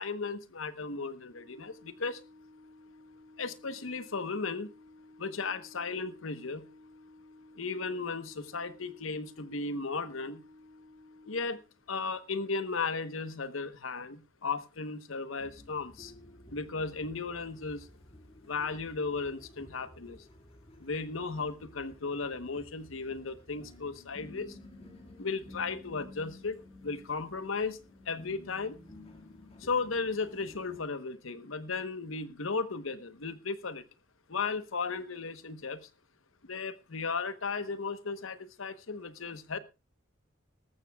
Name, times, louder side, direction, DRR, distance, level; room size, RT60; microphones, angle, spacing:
voice 1, 0.0-2.2 3.4-4.7 5.2-6.7 7.5-10.4 11.3-11.6 11.9-16.1 16.5-17.9 18.5-20.2 20.8-24.6 25.2-27.8 28.0-28.8 29.6-33.8 34.3-35.9 36.4-39.6, left 4 dB, 80° left, 1.0 m, -35 dB
Organ, 1.2-12.1, left 2 dB, 15° right, 6.9 m, -56 dB
sound 1, 15.4-30.8, left 1 dB, 30° left, 2.0 m, -53 dB
18.5 x 14.0 x 2.3 m
head